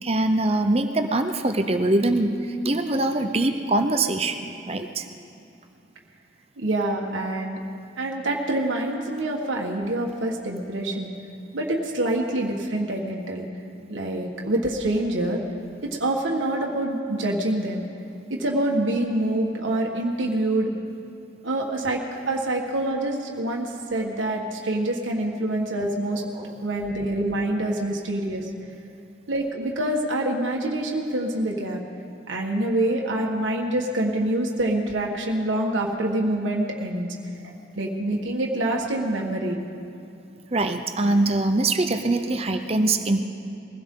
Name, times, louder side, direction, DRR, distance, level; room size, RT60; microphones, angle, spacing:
voice 1, 0.0-4.4 4.7-5.1 26.3-26.6 40.5-43.2, right 2 dB, 30° right, 6 dB, 0.7 m, -23 dB
voice 2, 6.6-7.6 8.0-11.1 11.5-13.5 13.9-15.4 15.9-17.9 18.4-20.7 21.4-22.0 22.3-26.2 26.6-28.5 29.3-31.8 32.3-37.1 37.4-39.6, right 1 dB, 90° right, 0 dB, 1.6 m, -26 dB
22.0 x 16.0 x 3.8 m, 2.6 s
head